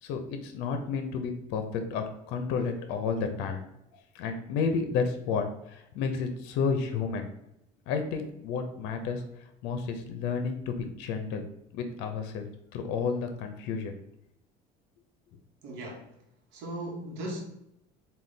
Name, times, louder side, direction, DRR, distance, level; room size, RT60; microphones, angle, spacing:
voice 1, 0.0-3.6 3.9-7.3 7.9-11.5 11.7-14.0, left 5 dB, 80° left, 6 dB, 0.5 m, -31 dB
voice 2, 15.6-16.0 16.5-17.4, right 1 dB, 80° right, 0 dB, 1.0 m, -37 dB
3.8 x 2.3 x 3.2 m, 0.80 s
supercardioid pair, 95°, 17 cm